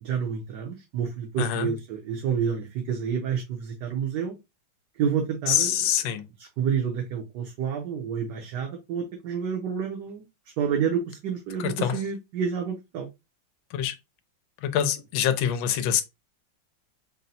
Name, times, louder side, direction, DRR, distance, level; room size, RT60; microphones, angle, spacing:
voice 1, 0.0-4.3 4.9-5.7 6.4-10.2 10.6-13.1, right 7 dB, 65° right, 1.3 m, -29 dB
voice 2, 1.4-1.7 5.5-6.3 11.6-11.9 13.7-13.9 14.6-16.0, left 10 dB, 75° left, 1.3 m, -25 dB
4.1 x 2.1 x 4.0 m
omnidirectional pair, 2.2 m